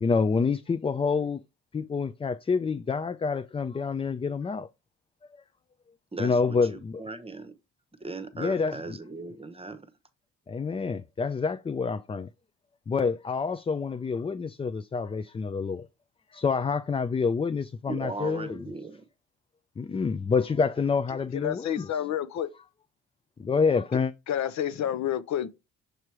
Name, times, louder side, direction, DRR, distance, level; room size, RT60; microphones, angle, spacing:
voice 1, 0.0-1.4 1.7-4.7 6.2-7.0 8.4-9.0 10.5-12.3 12.9-15.9 16.3-18.6 19.8-22.0 23.4-24.1, left 5 dB, 20° left, 0.4 m, -27 dB
voice 2, 6.1-7.6 8.0-9.9 17.9-19.0, right 3 dB, 20° right, 1.0 m, -38 dB
voice 3, 21.3-22.5 24.3-25.5, left 10 dB, 65° left, 0.7 m, -29 dB
6.7 x 3.0 x 4.7 m
cardioid pair, 90°, 30 cm